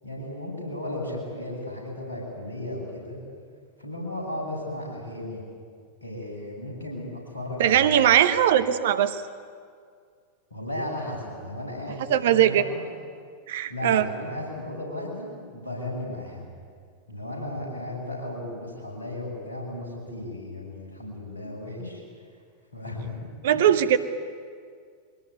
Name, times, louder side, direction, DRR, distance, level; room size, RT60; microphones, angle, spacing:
voice 1, 0.0-3.2 3.8-5.4 6.0-8.2 10.5-12.9 13.7-16.5 17.1-22.0 22.7-23.3, left 1 dB, 80° left, -1 dB, 7.9 m, -35 dB
voice 2, 7.6-9.2 12.1-12.6 13.5-14.1 23.4-24.0, right 10 dB, 55° right, 12 dB, 1.1 m, -20 dB
23.5 x 19.5 x 9.6 m, 2.1 s
figure-of-eight pair, 90°, 0 cm